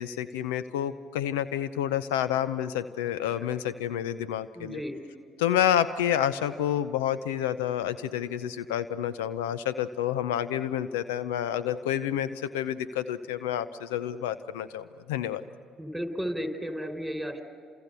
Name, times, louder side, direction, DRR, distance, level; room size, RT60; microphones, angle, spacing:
voice 1, 0.0-4.8 5.4-15.4, left 10 dB, 80° left, 15 dB, 0.6 m, -29 dB
voice 2, 4.5-5.0 15.8-17.4, equal, 5° right, 6 dB, 4.2 m, -33 dB
30.0 x 28.0 x 6.9 m, 2.2 s
hypercardioid pair, 55°, 0 cm